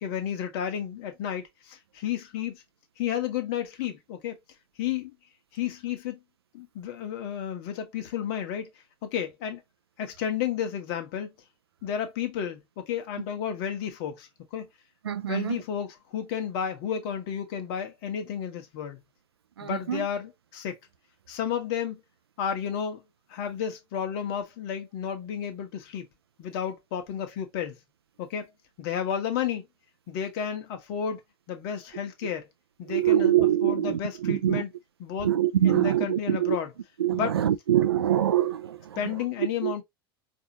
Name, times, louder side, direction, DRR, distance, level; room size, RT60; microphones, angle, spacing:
voice 1, 0.0-2.6 3.0-4.4 4.8-5.1 5.5-6.2 6.5-8.7 9.0-9.6 10.0-11.3 11.8-14.7 15.3-19.0 19.6-20.8 21.3-22.0 22.4-23.0 23.3-26.1 26.4-27.8 28.2-28.5 28.8-29.6 30.1-31.2 31.5-32.5 32.8-34.7 35.0-35.3 35.6-36.7 37.1-37.4 39.0-39.8, left 8 dB, 55° left, 1.1 m, -32 dB
voice 2, 15.0-15.6 19.6-20.1 32.9-34.6 35.2-36.6 37.0-39.0 39.6-39.7, right 11 dB, 85° right, 0.4 m, -24 dB
4.7 x 2.7 x 2.9 m
hypercardioid pair, 85°, 13 cm